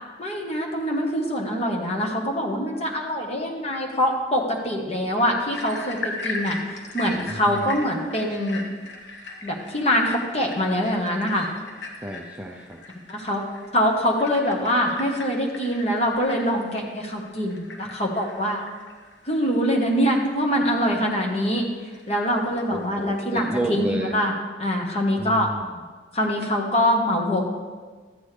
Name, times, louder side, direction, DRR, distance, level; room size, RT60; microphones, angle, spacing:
voice 1, 0.2-8.6 9.4-11.5 13.1-13.4 13.7-18.6 19.2-21.6 22.1-24.3 24.6-25.5 26.1-27.4, equal, 35° left, 0 dB, 1.3 m, -24 dB
sound 1, 5.5-23.8, left 3 dB, 85° left, 1.3 m, -39 dB
voice 2, 7.2-7.7 12.0-12.8 22.7-24.2 25.2-25.8, right 1 dB, 10° right, 0 dB, 0.5 m, -31 dB
13.5 x 7.9 x 3.4 m, 1.4 s
head